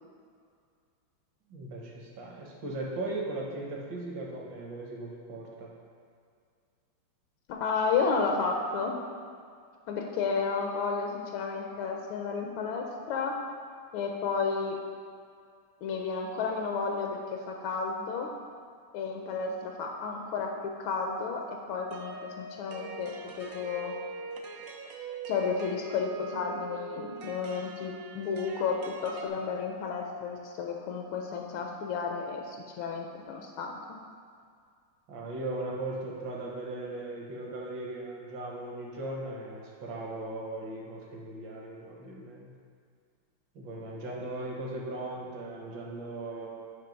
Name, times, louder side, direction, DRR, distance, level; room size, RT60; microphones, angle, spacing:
voice 1, 1.5-5.7 35.1-42.5 43.6-46.5, right 2 dB, 65° right, -2 dB, 1.7 m, -38 dB
voice 2, 7.5-8.9 9.9-13.3 13.9-14.8 15.8-18.3 18.9-23.9 25.3-28.8 29.0-33.7, left 5 dB, 85° left, 1 dB, 1.4 m, -32 dB
sound 1, 21.9-29.3, right 4 dB, 80° right, 0.7 m, -43 dB
9.0 x 3.1 x 5.2 m, 2.2 s
omnidirectional pair, 2.2 m